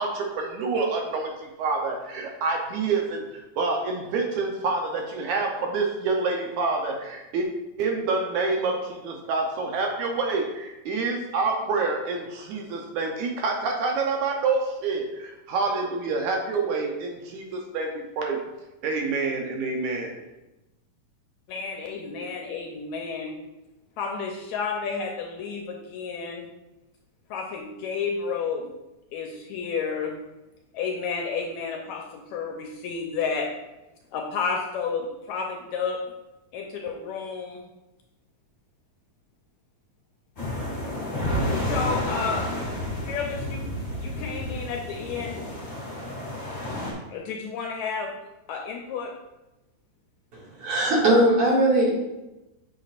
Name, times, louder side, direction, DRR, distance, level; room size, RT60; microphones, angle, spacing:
voice 1, 0.0-3.2 3.6-7.5 7.8-18.4 18.8-20.2, right 3 dB, 75° right, 1 dB, 2.0 m, -27 dB
voice 2, 21.5-23.4 24.0-26.5 27.3-28.7 29.1-30.2 30.7-33.5 34.1-36.0 36.5-37.6 41.6-42.5 43.1-43.6 44.0-45.4 47.1-48.1 48.5-49.1, left 5 dB, 75° left, 1 dB, 1.8 m, -31 dB
sound 1, 40.4-46.9, left 1 dB, 20° left, 1.5 m, -30 dB
voice 3, 50.3-51.9, right 1 dB, 50° right, -5 dB, 2.6 m, -20 dB
8.3 x 6.4 x 2.5 m, 0.99 s
omnidirectional pair, 3.7 m